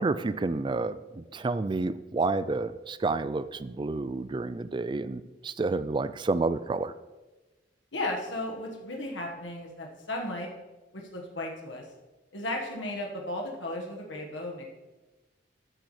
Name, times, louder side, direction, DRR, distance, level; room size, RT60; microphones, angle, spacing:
voice 1, 0.0-6.9, right 3 dB, 25° right, 14 dB, 0.3 m, -30 dB
voice 2, 7.9-10.5 10.9-11.9 12.3-14.7, left 1 dB, 85° left, 0 dB, 1.5 m, -35 dB
13.0 x 8.2 x 3.3 m, 1.2 s
head